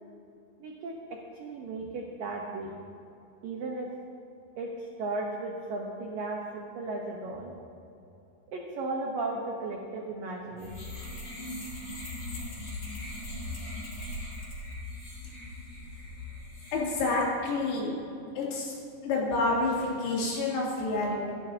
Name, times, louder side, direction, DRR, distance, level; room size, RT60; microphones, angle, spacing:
voice 1, 0.6-2.8 3.4-3.9 4.6-7.7 8.5-11.0, right 2 dB, 90° right, -1 dB, 1.9 m, -36 dB
sound 1, 10.6-17.2, left 1 dB, 35° left, 3.2 m, -39 dB
voice 2, 16.7-18.0 18.4-18.7 19.0-21.3, left 2 dB, 85° left, -5 dB, 5.6 m, -28 dB
25.0 x 13.0 x 2.9 m, 2.7 s
omnidirectional pair, 5.8 m